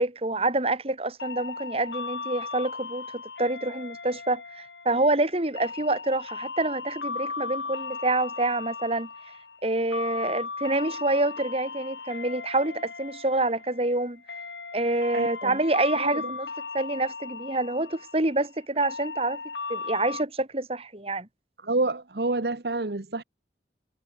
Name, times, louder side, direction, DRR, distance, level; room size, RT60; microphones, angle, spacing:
voice 1, 0.0-9.1 9.6-14.2 14.7-16.5 16.7-19.4 19.7-21.3, right 2 dB, 35° right, 2.6 m, -27 dB
sound 1, 1.2-20.2, left 4 dB, 85° left, 4.1 m, -37 dB
voice 2, 15.1-15.6 15.9-16.3 21.6-23.2, right 2 dB, 65° right, 1.2 m, -28 dB
head